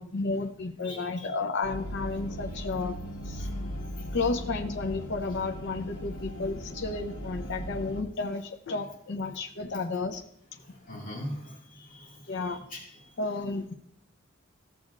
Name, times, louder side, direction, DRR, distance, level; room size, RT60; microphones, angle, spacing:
voice 1, 0.0-2.9 3.2-3.5 4.1-10.2 12.3-12.6 13.2-13.7, left 3 dB, 60° left, 3 dB, 0.6 m, -32 dB
voice 2, 0.8-1.3 3.4-3.5 10.9-12.1 12.4-12.8, equal, 45° left, -2 dB, 2.2 m, -41 dB
sound 1, 1.6-8.0, equal, 80° left, 1.1 m, -38 dB
14.5 x 7.6 x 2.5 m, 0.74 s
head